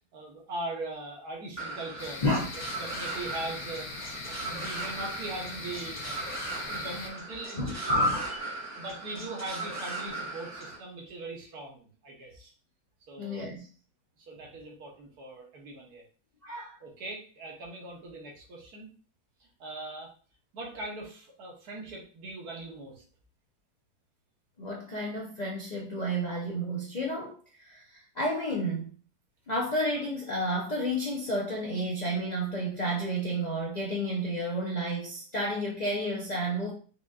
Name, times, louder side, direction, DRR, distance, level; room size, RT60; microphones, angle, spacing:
voice 1, 0.1-2.2 2.7-8.0 8.8-12.5 13.1-13.5 14.2-16.0 16.8-18.9 19.4-20.1 20.5-23.0, right 2 dB, 70° right, -1 dB, 1.5 m, -40 dB
sound 1, 1.6-10.8, right 2 dB, 10° right, 0.8 m, -38 dB
sound 2, 2.0-7.1, left 3 dB, 60° left, 1.0 m, -41 dB
voice 2, 7.6-8.4 13.2-13.7 16.4-16.8 24.6-28.9 29.5-36.7, equal, 75° left, -2 dB, 0.4 m, -31 dB
4.8 x 2.6 x 2.4 m, 0.40 s
omnidirectional pair, 1.7 m